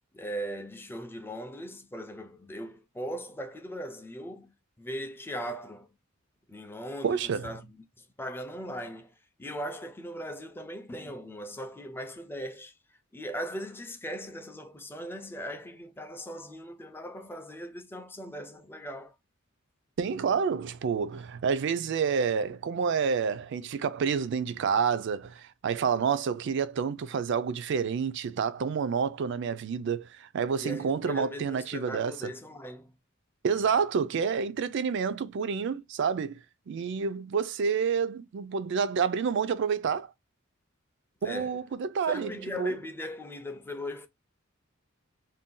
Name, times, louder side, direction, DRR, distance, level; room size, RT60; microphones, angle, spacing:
voice 1, 0.1-5.9 6.5-9.1 9.4-12.7 13.1-19.1 30.6-32.9 41.2-41.6 42.1-44.1, equal, 10° left, 0.4 m, -39 dB
voice 2, 7.0-7.5 20.0-32.1 33.4-36.4 36.7-40.1 41.2-42.7, right 6 dB, 60° right, 0.4 m, -29 dB
2.6 x 2.2 x 3.6 m
head